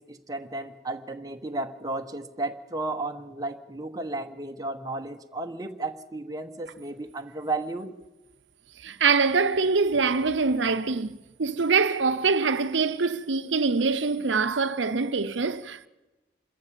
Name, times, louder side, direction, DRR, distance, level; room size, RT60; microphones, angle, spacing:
voice 1, 0.0-7.9, right 2 dB, 20° right, 1.1 m, -33 dB
voice 2, 8.8-15.9, right 4 dB, 90° right, 0.8 m, -24 dB
26.5 x 14.5 x 7.5 m
head